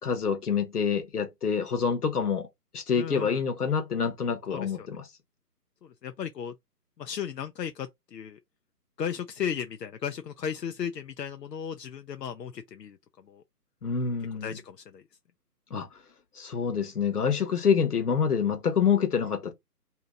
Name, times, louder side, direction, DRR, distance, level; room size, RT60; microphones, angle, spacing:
voice 1, 0.0-2.5 2.7-5.0 13.8-14.6 15.7-15.9 16.3-19.5, left 6 dB, 65° left, 1.0 m, -27 dB
voice 2, 3.0-3.4 4.5-4.9 5.8-6.5 7.0-8.4 9.0-13.4 14.4-15.0, left 8 dB, 85° left, 0.6 m, -35 dB
2.8 x 2.8 x 3.7 m
figure-of-eight pair, 150°, 48 cm